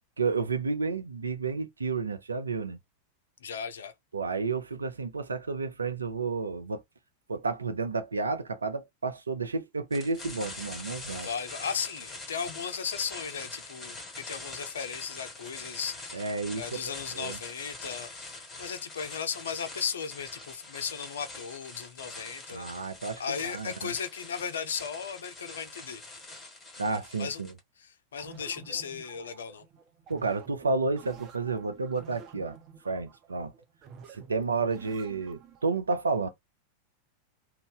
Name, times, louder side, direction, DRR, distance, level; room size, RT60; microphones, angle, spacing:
voice 1, 0.2-2.8 4.1-6.8 7.3-11.3 16.1-16.8 17.1-17.4 22.5-23.9 26.8-27.5 30.1-32.6 32.8-33.5 34.1-36.3, right 4 dB, 75° right, 0.5 m, -31 dB
voice 2, 3.4-3.9 11.2-16.3 16.5-22.7 23.2-26.0 27.2-27.4 27.8-29.6, left 7 dB, 65° left, 0.5 m, -36 dB
sound 1, 9.9-27.6, left 2 dB, 15° left, 1.5 m, -44 dB
sound 2, 28.2-35.7, right 6 dB, 35° right, 0.8 m, -50 dB
2.6 x 2.2 x 3.7 m
figure-of-eight pair, 90°, 0 cm